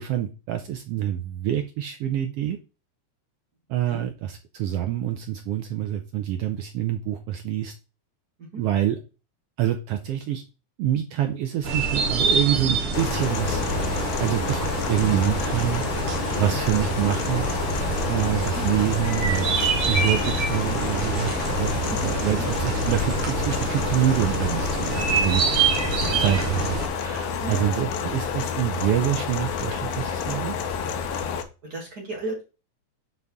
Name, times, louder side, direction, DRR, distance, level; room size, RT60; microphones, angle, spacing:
voice 1, 0.0-2.6 3.7-7.7 8.5-9.0 9.6-10.4 10.8-13.6 14.2-15.8 16.4-17.5 18.1-25.6 26.2-30.6, right 11 dB, 80° right, 6 dB, 1.4 m, -26 dB
sound 1, 11.6-26.9, right 4 dB, 55° right, 1.9 m, -26 dB
sound 2, 12.9-31.4, left 6 dB, 85° left, 2.2 m, -29 dB
voice 2, 21.9-22.4 26.0-26.2 27.4-27.7 31.6-32.4, right 2 dB, 35° right, -1 dB, 2.2 m, -35 dB
8.8 x 4.0 x 3.5 m, 0.31 s
omnidirectional pair, 3.3 m